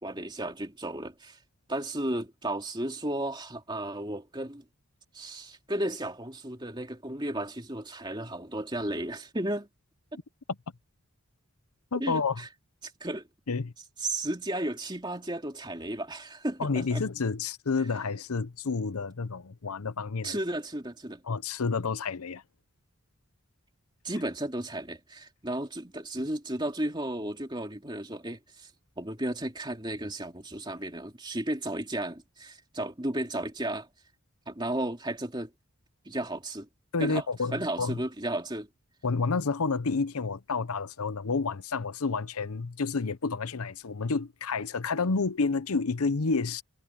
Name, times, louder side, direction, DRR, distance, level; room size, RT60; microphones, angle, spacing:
voice 1, 0.0-1.4 1.7-4.6 5.1-9.7 12.0-12.5 13.0-13.3 14.0-17.0 20.2-21.2 24.0-28.7 29.0-33.9 34.5-35.5 36.0-36.7 37.0-37.2 37.5-38.7, right 1 dB, 20° right, 3.0 m, -34 dB
voice 2, 11.9-12.4 13.5-13.7 16.6-20.4 21.3-22.4 36.9-38.0 39.0-46.6, left 4 dB, 80° left, 0.8 m, -29 dB
head